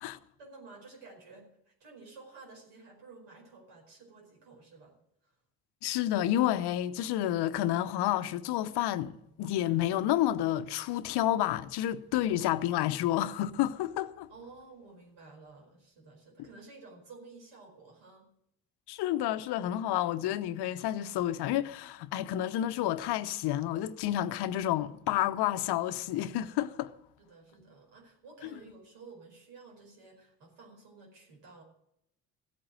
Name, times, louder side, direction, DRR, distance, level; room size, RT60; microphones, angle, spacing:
voice 1, 0.4-5.0 5.2-5.3 14.3-18.3 27.2-31.6, right 3 dB, 65° right, 5.0 m, -52 dB
voice 2, 5.8-14.3 18.9-26.9, left 12 dB, 60° left, 0.9 m, -30 dB
15.0 x 8.7 x 7.7 m
hypercardioid pair, 50°, 45 cm